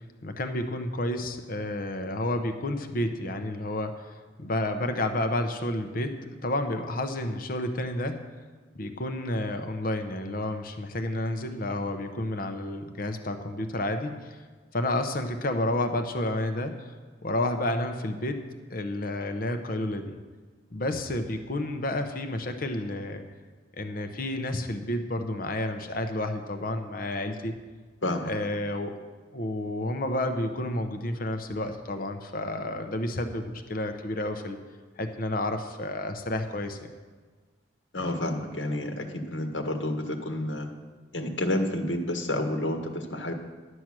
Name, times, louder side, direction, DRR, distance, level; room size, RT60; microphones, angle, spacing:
voice 1, 0.2-8.2 8.7-14.4 14.7-16.9 17.2-18.4 18.7-20.1 20.7-23.2 23.8-27.6 28.2-28.9 29.3-34.6 35.0-36.9, left 1 dB, 50° left, 7 dB, 0.8 m, -30 dB
voice 2, 28.0-28.5 37.9-40.7 41.1-43.3, left 1 dB, 80° left, 4 dB, 1.5 m, -30 dB
12.0 x 8.0 x 6.1 m, 1.4 s
head